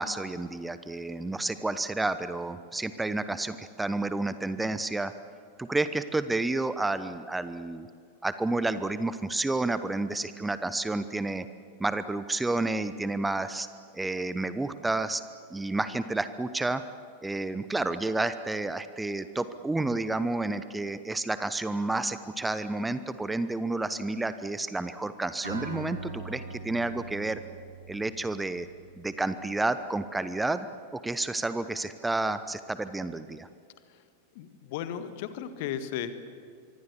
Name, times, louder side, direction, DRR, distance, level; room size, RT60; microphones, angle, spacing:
voice 1, 0.0-5.1 5.6-7.9 8.2-11.5 11.8-13.7 13.9-15.2 15.5-16.8 17.2-27.4 27.9-28.7 29.0-30.7 30.9-33.5, right 2 dB, 10° right, 13 dB, 0.9 m, -30 dB
Acoustic guitar, 25.4-29.3, right 3 dB, 80° right, 5.8 m, -41 dB
voice 2, 34.3-36.1, left 9 dB, 50° left, 11 dB, 1.8 m, -35 dB
25.5 x 24.0 x 7.1 m, 2.3 s
figure-of-eight pair, 90°, 0 cm